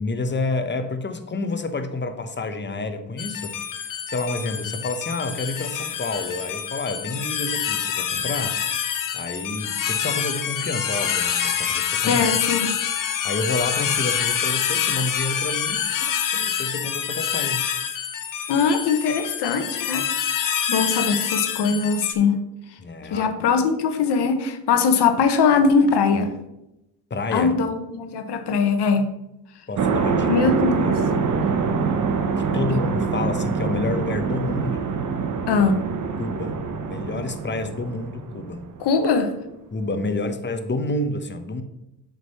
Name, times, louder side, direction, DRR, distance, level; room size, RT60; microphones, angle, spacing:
voice 1, 0.0-8.6 9.1-12.3 13.2-17.7 22.8-23.3 27.1-27.5 29.7-30.4 30.8-30.9 32.4-34.9 36.2-36.6 36.8-38.6 39.7-41.6, left 2 dB, 25° left, 8 dB, 1.0 m, -29 dB
sound 1, 3.2-22.1, left 8 dB, 50° left, 0.9 m, -26 dB
voice 2, 12.0-12.7 18.5-22.4 23.1-26.3 27.3-29.1 30.3-30.9 35.5-35.8 38.8-39.3, left 5 dB, 70° left, 7 dB, 1.3 m, -21 dB
sound 2, 29.8-38.8, right 5 dB, 45° right, 1.0 m, -25 dB
8.0 x 3.9 x 5.5 m, 0.88 s
cardioid pair, 75°, 43 cm